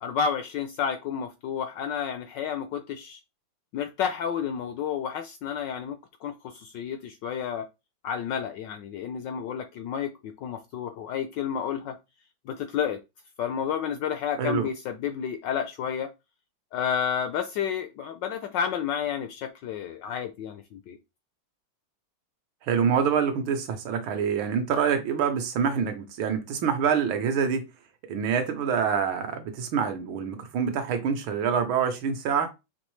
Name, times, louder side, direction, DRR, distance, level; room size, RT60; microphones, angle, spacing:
voice 1, 0.0-3.2 3.7-7.6 8.0-11.9 12.5-13.0 13.4-16.1 16.7-21.0, left 8 dB, 75° left, 1.0 m, -31 dB
voice 2, 14.4-14.7 22.6-27.7 28.1-32.5, right 7 dB, 70° right, 1.5 m, -26 dB
5.2 x 3.0 x 3.1 m
omnidirectional pair, 2.4 m